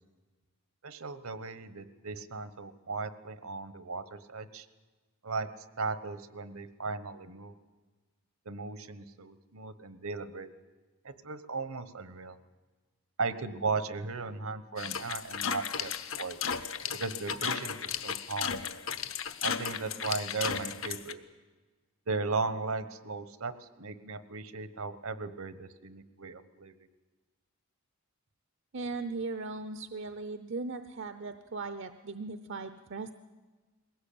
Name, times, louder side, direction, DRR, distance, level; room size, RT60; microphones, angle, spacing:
voice 1, 0.8-4.7 5.2-5.5 5.8-7.6 8.4-10.5 11.0-12.4 13.2-15.9 16.2-16.4 17.0-18.7 19.4-21.2 22.1-26.8, right 4 dB, 70° right, 13 dB, 1.2 m, -37 dB
sound 1, 14.8-21.1, left 7 dB, 60° left, 1.0 m, -35 dB
voice 2, 28.7-33.1, right 3 dB, 55° right, 10 dB, 0.7 m, -38 dB
21.5 x 17.5 x 8.6 m, 1.3 s
head